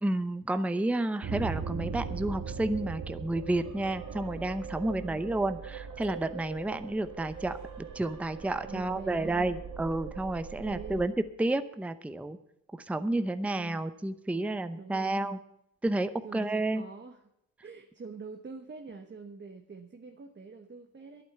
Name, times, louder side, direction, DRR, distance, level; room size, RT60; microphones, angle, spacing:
voice 1, 0.0-11.1 11.4-12.4 12.7-15.4 15.8-16.8, right 2 dB, 5° right, 10 dB, 0.7 m, -31 dB
sound 1, 1.2-11.1, right 5 dB, 50° right, 1.8 m, -40 dB
voice 2, 4.9-5.3 8.7-9.6 10.6-11.0 13.5-13.9 14.3-15.3 16.2-17.2 17.6-21.2, right 4 dB, 30° right, 5 dB, 1.2 m, -45 dB
sound 2, 6.0-7.5, left 2 dB, 55° left, 2.5 m, -50 dB
11.0 x 9.1 x 8.0 m, 0.81 s
cardioid pair, 80°, 37 cm